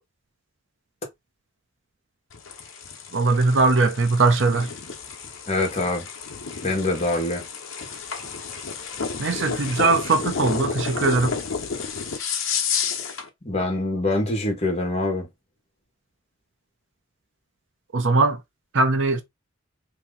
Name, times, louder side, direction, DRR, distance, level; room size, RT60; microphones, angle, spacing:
sound 1, 2.3-13.3, left 6 dB, 90° left, 1.0 m, -31 dB
voice 1, 3.1-4.7 9.2-11.3 17.9-18.4 18.7-19.2, right 3 dB, 70° right, 0.7 m, -20 dB
voice 2, 5.5-6.0 6.6-7.4 13.4-15.3, left 2 dB, 35° left, 1.4 m, -24 dB
3.0 x 2.9 x 3.8 m
head